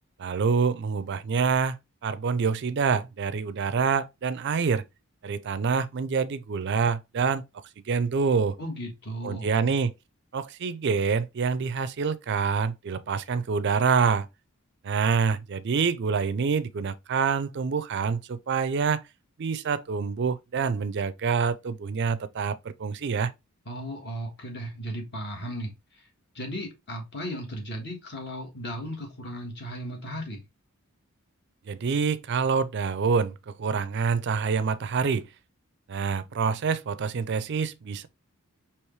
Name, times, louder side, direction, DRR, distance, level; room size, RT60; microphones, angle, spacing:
voice 1, 0.2-1.8 2.0-4.8 5.2-7.4 7.9-8.6 9.2-9.9 10.3-14.3 14.8-19.0 19.4-23.3 31.7-35.3 35.9-38.1, right 5 dB, 50° right, 0.4 m, -26 dB
voice 2, 8.6-9.6 23.6-26.0 26.3-30.4, equal, 50° left, 1.5 m, -36 dB
4.7 x 2.9 x 3.2 m
head